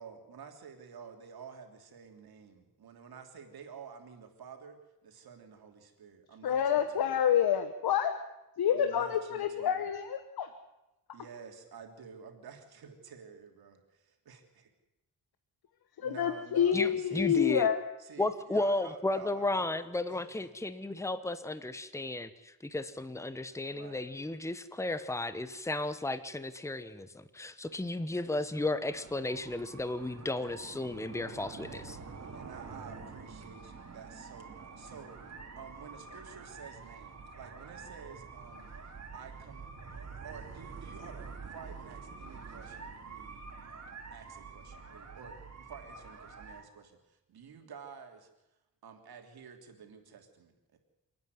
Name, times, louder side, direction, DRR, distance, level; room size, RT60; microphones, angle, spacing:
voice 1, 0.0-7.1 8.7-9.8 11.1-13.8 14.3-14.4 16.0-17.6 18.0-19.7 20.1-20.5 23.7-24.1 28.3-28.8 31.6-32.0 32.3-38.7 39.1-39.7 40.2-48.3 48.8-50.8, right 6 dB, 85° right, 4 dB, 3.2 m, -51 dB
voice 2, 6.4-8.1 8.6-10.5 16.0-17.8, left 9 dB, 85° left, 9 dB, 1.3 m, -28 dB
voice 3, 16.7-17.7 18.2-32.0, left 2 dB, 10° left, 12 dB, 1.1 m, -34 dB
sound 1, 28.9-46.6, right 4 dB, 45° right, 3.0 m, -47 dB
28.5 x 9.5 x 9.5 m, 0.96 s
cardioid pair, 105°, 36 cm